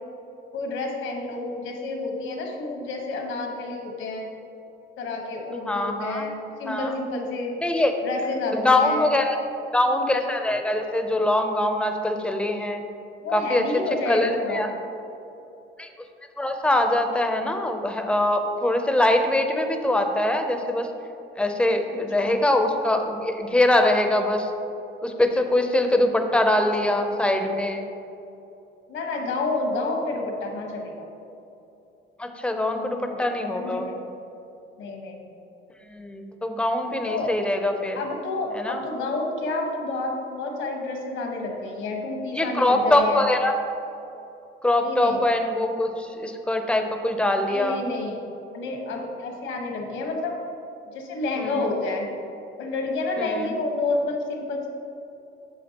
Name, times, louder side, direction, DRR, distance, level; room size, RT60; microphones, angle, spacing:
voice 1, 0.5-4.3 5.0-7.5 8.0-9.1 13.2-14.7 22.2-22.4 26.5-26.6 26.8-27.0 28.9-31.1 32.7-33.2 33.5-34.1 34.8-35.3 37.0-37.3 37.9-43.3 44.8-45.2 47.5-48.2 48.5-50.4 50.9-52.1 52.6-54.7, left 2 dB, 70° left, 1 dB, 1.2 m, -29 dB
voice 2, 5.7-6.3 6.7-6.9 7.6-8.0 8.5-9.4 9.7-12.8 13.3-13.6 14.1-14.7 15.8-15.9 16.4-20.9 21.4-24.5 25.0-27.8 32.2-33.9 35.9-38.0 38.5-38.8 42.3-43.6 44.6-47.8 51.4-51.6 53.2-53.5, left 1 dB, 5° left, 5 dB, 0.5 m, -23 dB
8.6 x 6.1 x 2.9 m, 2.9 s
cardioid pair, 135°, 21 cm